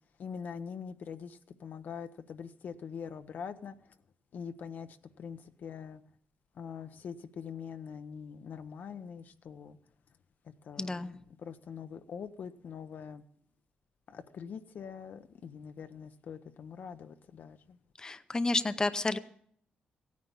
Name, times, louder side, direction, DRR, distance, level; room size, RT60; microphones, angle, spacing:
voice 1, 0.2-4.0 4.3-6.0 6.5-9.8 10.4-13.2 14.1-17.8, left 6 dB, 65° left, 9 dB, 0.8 m, -44 dB
voice 2, 10.8-11.1 18.0-19.2, left 2 dB, 20° left, 11 dB, 0.7 m, -30 dB
16.0 x 9.5 x 7.1 m, 0.64 s
cardioid pair, 100°, 3 cm